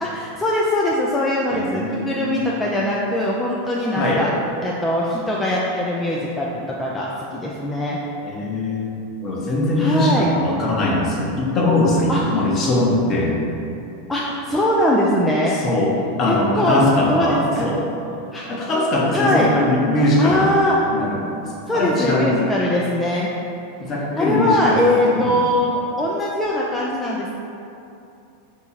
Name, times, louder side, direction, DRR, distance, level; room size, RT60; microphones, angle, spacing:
voice 1, 0.0-4.3 4.6-8.0 9.8-10.3 12.1-12.4 14.1-15.6 16.3-16.8 17.1-17.7 18.3-18.5 19.1-19.5 20.2-20.8 21.7-23.3 24.2-27.3, left 1 dB, 10° left, -4 dB, 0.4 m, -21 dB
voice 2, 1.5-2.4 3.9-4.2 8.2-8.9 9.2-13.4 15.6-17.8 18.5-20.5 20.9-21.2 21.7-22.3 23.8-25.3, left 1 dB, 35° left, -3 dB, 0.9 m, -21 dB
3.5 x 2.8 x 4.2 m, 2.7 s
hypercardioid pair, 95°, 0 cm